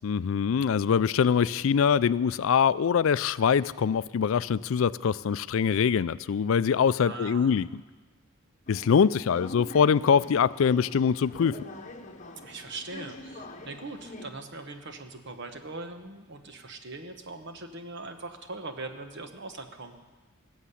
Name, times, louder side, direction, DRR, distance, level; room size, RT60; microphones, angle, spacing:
voice 1, 0.0-7.7 8.7-11.6, left 7 dB, 70° left, 18 dB, 0.4 m, -23 dB
voice 2, 7.0-7.6 12.4-20.0, right 2 dB, 55° right, 7 dB, 1.2 m, -41 dB
sound 1, 8.7-14.3, left 2 dB, 35° left, 1.1 m, -44 dB
19.0 x 7.3 x 8.3 m, 1.2 s
head